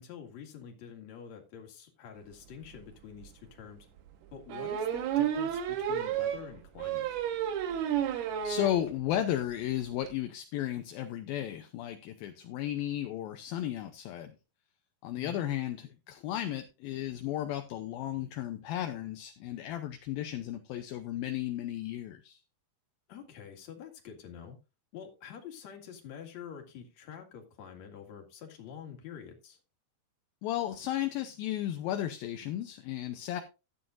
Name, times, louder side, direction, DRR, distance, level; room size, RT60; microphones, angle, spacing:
voice 1, 0.0-3.9 4.3-7.1 15.1-15.4 23.1-24.6 24.9-29.6, left 8 dB, 50° left, 3 dB, 2.9 m, -47 dB
sound 1, 2.7-2.8 3.2-3.3 4.5-8.8 9.2-9.3 9.5-9.6 9.8-10.1, right 10 dB, 80° right, 3.2 m, -31 dB
voice 2, 8.4-14.3 15.0-22.4 30.4-33.4, left 12 dB, 75° left, 7 dB, 2.4 m, -34 dB
13.5 x 9.2 x 2.6 m, 0.29 s
omnidirectional pair, 4.6 m